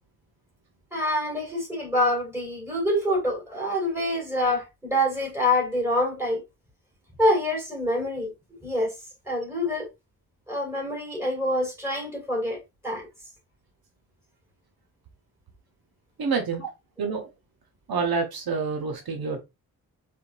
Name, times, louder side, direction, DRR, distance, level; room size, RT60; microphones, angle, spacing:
voice 1, 0.9-6.4 7.2-8.3 8.6-8.9 9.3-9.9 10.5-13.1, left 1 dB, 5° right, 2.8 m, -26 dB
voice 2, 16.2-16.6 17.0-17.3 17.9-19.4, right 5 dB, 70° right, 0.9 m, -27 dB
4.4 x 3.5 x 2.6 m
wide cardioid pair, 135°, 38 cm